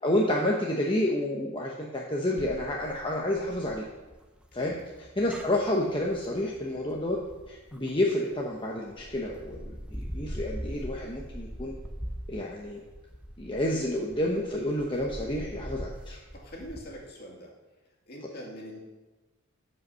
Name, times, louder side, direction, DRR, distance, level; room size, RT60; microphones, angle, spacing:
voice 1, 0.0-3.8 4.5-4.7 5.2-7.2 7.5-9.6 9.9-11.7 12.3-12.8 13.4-16.2, left 1 dB, 25° left, -2 dB, 0.9 m, -29 dB
sound 1, 2.4-8.4 8.9-16.8, equal, 5° right, 0.8 m, -42 dB
voice 2, 16.3-17.5 18.1-18.8, equal, 45° left, -2 dB, 2.5 m, -43 dB
14.0 x 5.5 x 5.6 m, 1.2 s
head